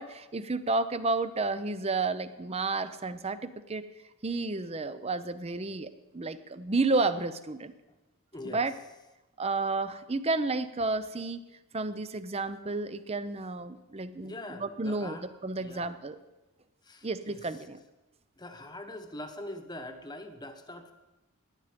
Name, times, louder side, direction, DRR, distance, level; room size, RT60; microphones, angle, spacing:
voice 1, 0.0-3.9 4.2-7.7 8.4-8.7 9.4-11.4 11.7-16.2 17.0-17.8, right 3 dB, 30° right, 13 dB, 0.7 m, -31 dB
voice 2, 8.3-8.7 14.2-15.2 15.6-15.9 16.8-17.5 18.4-20.9, left 1 dB, 20° left, 6 dB, 1.2 m, -43 dB
17.5 x 11.0 x 5.2 m, 1.0 s
head